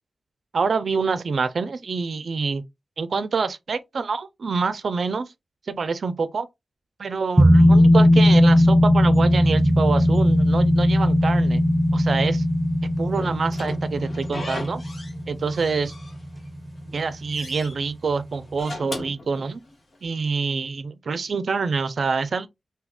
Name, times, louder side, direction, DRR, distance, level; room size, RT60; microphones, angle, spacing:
voice 1, 0.5-2.6 3.0-5.3 5.7-6.5 7.0-11.6 11.9-12.4 13.0-14.8 15.3-15.9 16.9-19.6 20.0-22.5, right 4 dB, 80° right, 0.4 m, -26 dB
sound 1, 7.4-16.5 16.8-16.9, left 1 dB, 25° right, 0.6 m, -18 dB
Slam / Squeak, 13.2-15.2 15.5-16.5 16.9-17.7 18.4-20.0, left 2 dB, 75° left, 1.2 m, -38 dB
2.7 x 2.3 x 3.4 m
wide cardioid pair, 70°, 0 cm